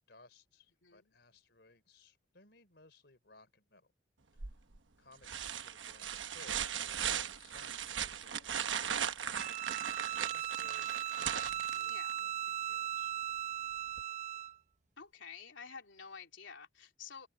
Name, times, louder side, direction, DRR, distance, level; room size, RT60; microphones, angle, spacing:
voice 1, 0.1-3.9 4.3-4.5 5.0-9.8 10.3-13.2, left 3 dB, 60° left, 3.8 m, -62 dB
voice 2, 0.8-1.1 11.8-12.2 15.0-17.3, left 6 dB, 85° left, 3.5 m, -50 dB
sound 1, 4.4-4.8 5.2-12.2 14.0-14.1, right 8 dB, 80° right, 1.1 m, -38 dB
Bowed string instrument, 9.3-14.6, right 12 dB, 40° right, 0.8 m, -38 dB
open air
head